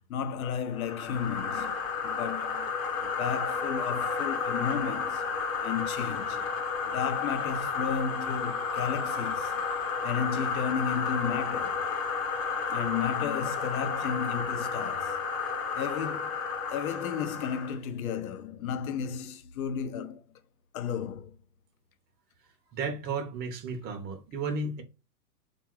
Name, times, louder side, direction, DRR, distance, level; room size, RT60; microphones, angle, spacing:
voice 1, 0.1-1.8 2.0-2.7 3.0-5.2 5.6-6.5 6.8-9.6 10.0-11.9 12.7-15.2 15.7-16.4 16.7-20.2 20.7-21.4, left 7 dB, 60° left, 0.8 m, -33 dB
sound 1, 0.8-17.8, left 5 dB, 30° left, 1.0 m, -32 dB
voice 2, 22.7-24.8, right 4 dB, 20° right, 0.7 m, -33 dB
3.6 x 2.6 x 4.5 m
hypercardioid pair, 120°, 48 cm